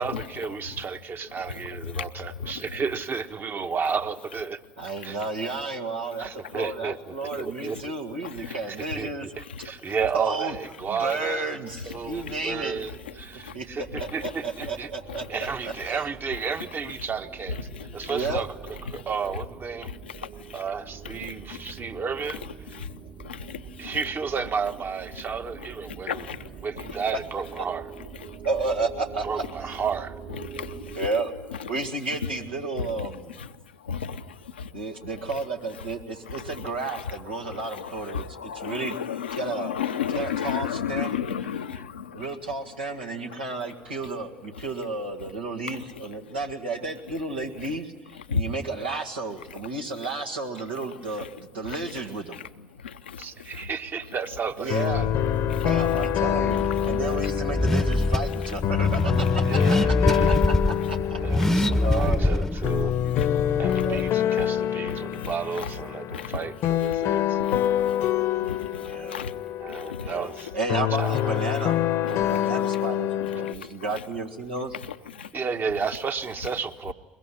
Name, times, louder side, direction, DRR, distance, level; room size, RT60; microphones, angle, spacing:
voice 1, 0.0-4.6 5.0-5.2 6.2-7.9 8.4-11.6 11.8-14.9 15.3-17.6 17.9-19.9 20.5-22.4 23.8-26.3 26.6-27.9 29.2-30.2 53.2-55.1 59.4-60.4 61.2-63.0 63.6-67.4 69.6-70.5 71.0-71.4 75.3-76.9, right 5 dB, 40° right, 1.4 m, -32 dB
voice 2, 1.5-2.6 6.4-6.5 8.2-8.9 9.4-9.6 11.9-12.4 12.9-13.1 13.4-13.6 13.9-14.3 15.1-15.3 17.5-18.3 18.9-19.0 19.8-20.6 21.1-21.8 22.7-24.0 25.9-26.5 26.8-26.9 28.2-28.4 30.4-31.1 31.6-31.8 32.2-32.3 32.8-33.1 33.4-33.5 33.8-34.8 35.8-36.0 36.3-42.4 44.0-44.1 45.7-45.8 48.3-48.4 51.2-51.3 51.6-51.8 52.3-53.7 55.5-55.7 56.4-57.3 57.6-57.8 58.9-59.3 60.1-60.3 60.8-60.9 61.3-62.1 63.2-63.9 64.9-65.7 66.1-66.4 66.9-67.0 67.4-68.1 68.4-69.3 69.7-70.1 72.0-72.1 73.2-74.0 74.9-75.3, left 7 dB, 90° left, 0.8 m, -35 dB
voice 3, 4.8-9.3 10.1-10.5 10.9-12.8 13.5-13.7 14.0-15.2 15.9-16.0 18.1-18.4 28.4-29.7 30.9-31.3 31.7-33.4 34.7-39.0 39.4-39.7 40.1-41.2 42.1-47.9 48.3-52.4 54.6-55.1 55.6-59.6 60.3-61.5 61.8-62.5 63.7-64.0 68.9-69.2 70.0-70.3 70.5-71.8 72.1-74.8, right 3 dB, 90° right, 1.9 m, -32 dB
sound 1, 11.8-31.0, right 7 dB, 60° right, 4.2 m, -45 dB
sound 2, 54.7-73.5, left 11 dB, 60° left, 0.9 m, -26 dB
Car / Accelerating revving vroom, 54.9-64.1, left 1 dB, 5° left, 0.9 m, -25 dB
22.0 x 22.0 x 10.0 m
hypercardioid pair, 60°, 5 cm